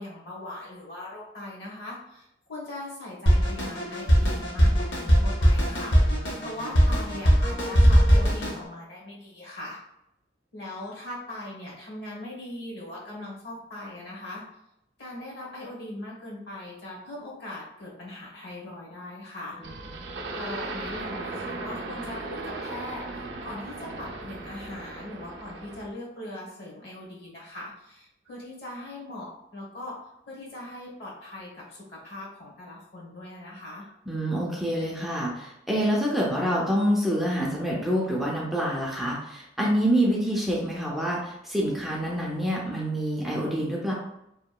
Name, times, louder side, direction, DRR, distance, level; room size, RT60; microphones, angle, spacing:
voice 1, 0.0-6.1 6.4-9.8 10.5-14.4 15.0-19.6 19.9-20.0 20.3-33.8, left 1 dB, 65° left, -3 dB, 0.9 m, -40 dB
Drum kit, 3.3-8.6, equal, 85° left, 0.7 m, -20 dB
sound 1, 19.6-25.9, right 2 dB, 75° right, 0.4 m, -37 dB
voice 2, 34.1-43.9, equal, ahead, -5 dB, 0.4 m, -26 dB
2.8 x 2.2 x 2.2 m, 0.81 s
head